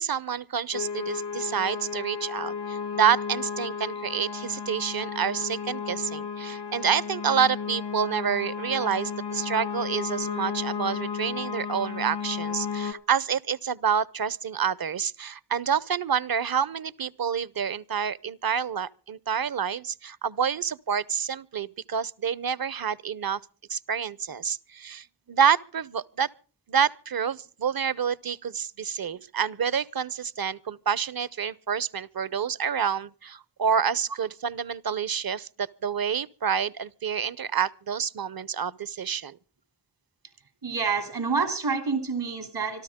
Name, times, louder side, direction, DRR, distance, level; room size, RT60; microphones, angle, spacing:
voice 1, 0.0-23.4 23.7-26.3 26.7-39.4, right 7 dB, 60° right, 0.8 m, -28 dB
sound 1, 0.7-12.9, left 6 dB, 85° left, 1.7 m, -33 dB
voice 2, 40.6-42.8, right 5 dB, 80° right, 3.0 m, -28 dB
25.5 x 13.0 x 3.6 m
cardioid pair, 45°, 40 cm